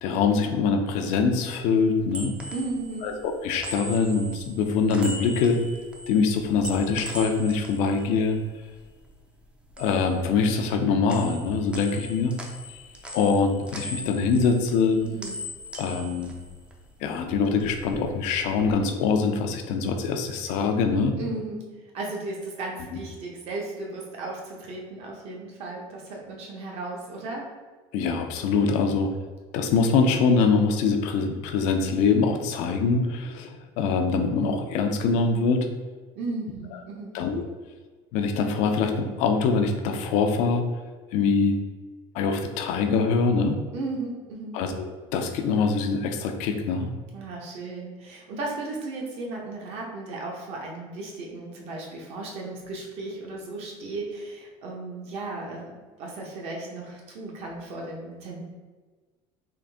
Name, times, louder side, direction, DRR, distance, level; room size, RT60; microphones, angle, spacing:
voice 1, 0.0-2.4 3.0-5.6 6.1-8.4 9.8-12.4 13.1-15.0 15.8-16.3 17.0-21.2 27.9-29.1 29.5-35.7 37.1-37.4 38.1-40.6 41.1-41.6 42.1-43.6 44.5-46.9, left 4 dB, 65° left, 5 dB, 0.5 m, -24 dB
sound 1, 1.8-9.1 9.4-10.8 11.1-17.1 17.4-18.7, left 1 dB, 10° right, 0.4 m, -40 dB
voice 2, 2.5-3.1 15.0-15.4 21.2-21.6 21.9-27.5 28.9-29.0 36.2-37.2 43.7-44.6 47.1-58.4, right 2 dB, 55° right, -1 dB, 0.9 m, -35 dB
3.8 x 2.5 x 3.5 m, 1.3 s
cardioid pair, 145°, 13 cm